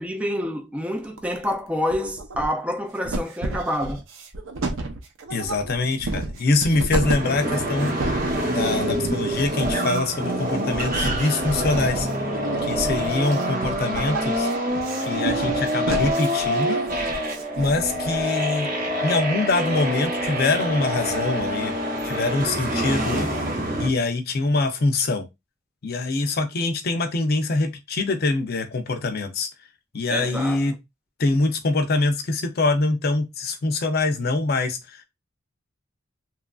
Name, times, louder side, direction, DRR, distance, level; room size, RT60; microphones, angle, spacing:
voice 1, 0.0-4.0 22.7-23.3 30.1-30.7, equal, 5° right, 0.3 m, -28 dB
sound 1, 1.0-1.6 1.9-2.7 3.0-18.2, right 2 dB, 75° right, 0.6 m, -31 dB
voice 2, 5.3-8.1 8.5-12.1 12.6-14.5 15.0-16.8 17.6-18.7 19.0-21.7 22.0-23.3 23.8-25.3 25.8-29.5 29.9-30.8 31.2-35.1, left 3 dB, 50° left, 0.5 m, -24 dB
sound 2, 7.0-23.9, equal, 45° right, 0.8 m, -26 dB
3.0 x 2.4 x 2.3 m
head